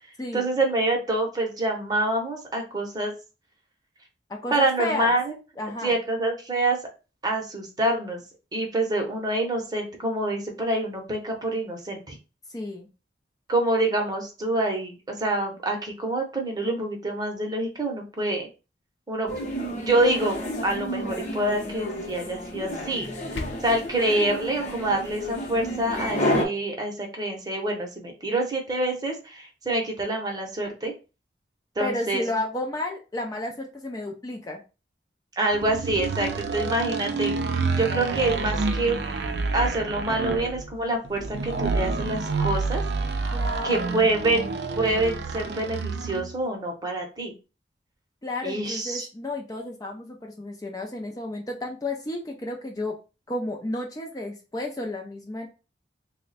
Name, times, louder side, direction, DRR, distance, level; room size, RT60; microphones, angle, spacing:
voice 1, 0.3-3.1 4.5-5.3 5.8-6.8 7.2-8.2 8.5-12.2 13.5-18.5 19.1-19.3 19.9-20.4 20.6-23.1 23.6-30.9 31.8-32.2 35.4-37.4 37.8-39.2 39.5-42.8 43.6-47.3 48.4-49.1, right 2 dB, 20° right, 1 dB, 0.8 m, -26 dB
voice 2, 4.3-5.2 5.6-6.0 12.5-12.9 31.8-34.6 43.3-44.1 48.2-53.0 53.3-55.5, left 1 dB, 20° left, 1 dB, 0.4 m, -32 dB
sound 1, 19.3-26.4, equal, 40° left, 0.7 m, -31 dB
sound 2, 22.9-23.9, left 2 dB, 80° left, 0.6 m, -38 dB
plastic pool hose, 35.5-46.3, right 4 dB, 65° right, 0.4 m, -28 dB
3.3 x 2.1 x 3.9 m, 0.31 s
head